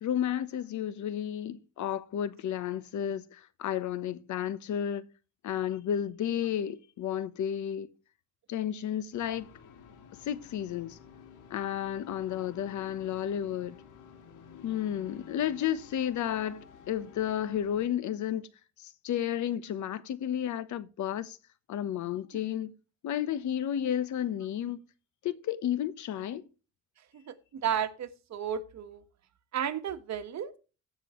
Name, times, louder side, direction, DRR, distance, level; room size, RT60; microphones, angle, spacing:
voice 1, 0.0-5.1 5.4-7.9 8.5-9.5 10.2-11.0 11.5-13.8 14.6-18.5 18.8-21.4 21.7-22.7 23.0-24.8 25.2-26.4, left 10 dB, 70° left, 1.0 m, -32 dB
sound 1, 9.1-17.9, left 7 dB, 90° left, 2.0 m, -52 dB
voice 2, 27.1-29.0 29.5-30.5, right 9 dB, 65° right, 1.5 m, -33 dB
16.0 x 6.2 x 3.1 m
cardioid pair, 90°, 30 cm